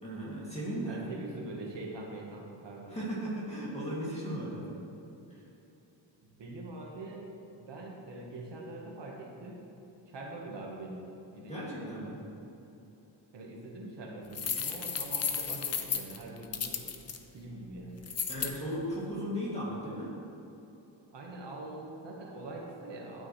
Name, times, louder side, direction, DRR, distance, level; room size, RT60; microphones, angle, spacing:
voice 1, 0.0-1.0 2.9-4.7 5.3-5.4 11.5-12.2 18.3-20.1, equal, 15° left, -7 dB, 2.3 m, -36 dB
voice 2, 0.9-3.0 6.4-7.3 7.6-9.6 10.1-11.0 11.3-12.2 13.3-16.9 17.3-18.0 21.1-23.3, right 2 dB, 65° right, -1 dB, 1.4 m, -43 dB
sound 1, 14.3-17.2 18.0-18.5, left 6 dB, 35° left, 0.5 m, -33 dB
12.0 x 8.9 x 3.2 m, 3.0 s
wide cardioid pair, 175°, 46 cm